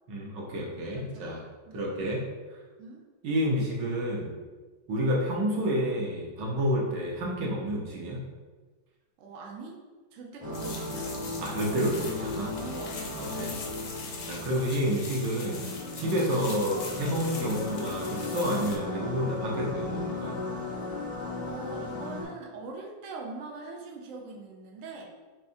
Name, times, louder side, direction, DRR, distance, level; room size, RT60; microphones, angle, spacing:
voice 1, 0.1-1.4 1.7-2.2 3.2-4.3 4.9-8.2 11.4-12.5 13.2-13.5 14.2-20.4, equal, 65° right, -2 dB, 1.4 m, -29 dB
voice 2, 1.0-1.4 1.7-1.9 2.8-3.0 9.2-9.8 10.1-11.3 12.6-13.0 16.4-16.6 21.4-25.1, right 3 dB, 90° right, 0 dB, 0.7 m, -43 dB
sound 1, 10.4-22.2, left 2 dB, 10° right, 0.5 m, -36 dB
sound 2, 10.5-18.8, left 4 dB, 80° left, 0.7 m, -42 dB
4.7 x 3.3 x 2.6 m, 1.3 s
omnidirectional pair, 2.2 m